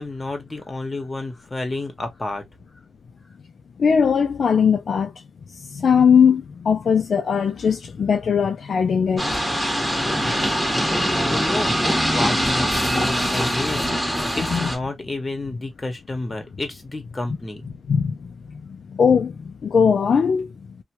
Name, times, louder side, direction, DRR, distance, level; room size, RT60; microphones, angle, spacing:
voice 1, 0.0-2.4 10.1-10.5 10.9-17.7, left 2 dB, 25° left, 1.2 m, -30 dB
voice 2, 3.8-5.1 5.6-9.4 10.2-10.3 14.5-14.7 17.9-20.5, left 6 dB, 70° left, 0.4 m, -20 dB
sound 1, 9.2-14.8, equal, ahead, 1.2 m, -22 dB
2.8 x 2.3 x 2.9 m
cardioid pair, 80°, 0 cm